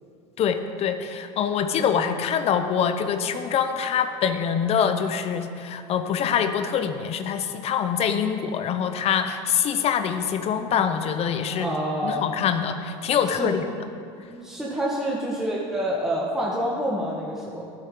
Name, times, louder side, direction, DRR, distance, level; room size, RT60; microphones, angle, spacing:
voice 1, 0.4-11.7 12.0-13.6, left 7 dB, 45° left, 9 dB, 0.8 m, -24 dB
voice 2, 11.5-12.3 13.3-13.5 14.3-17.7, equal, 5° right, -5 dB, 1.6 m, -27 dB
12.0 x 10.0 x 3.9 m, 2.4 s
supercardioid pair, 100°, 15 cm